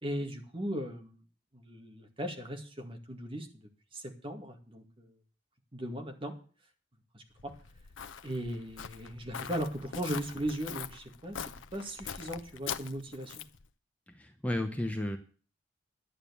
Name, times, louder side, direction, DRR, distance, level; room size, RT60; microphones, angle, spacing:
voice 1, 0.0-1.2 1.5-3.5 3.9-5.1 5.7-6.3 7.1-7.5 8.2-11.4 11.7-13.4, equal, 30° right, 3 dB, 2.1 m, -38 dB
Walk footsteps, 7.4-13.7, left 7 dB, 90° left, 0.7 m, -43 dB
voice 2, 14.1-15.2, left 1 dB, 10° left, 5 dB, 0.8 m, -33 dB
11.5 x 8.9 x 7.1 m, 0.39 s
head